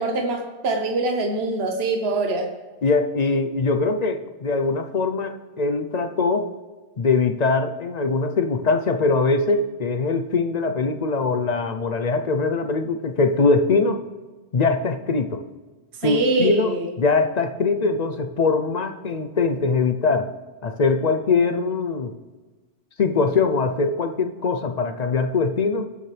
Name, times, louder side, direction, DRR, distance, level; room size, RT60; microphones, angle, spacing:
voice 1, 0.0-2.5 15.9-16.9, right 2 dB, 70° right, 4 dB, 1.3 m, -23 dB
voice 2, 2.8-6.5 7.0-14.0 14.5-15.4 16.0-20.3 20.6-22.2 23.0-25.9, left 4 dB, 45° left, 8 dB, 0.6 m, -22 dB
20.5 x 7.4 x 3.3 m, 1.3 s
omnidirectional pair, 1.1 m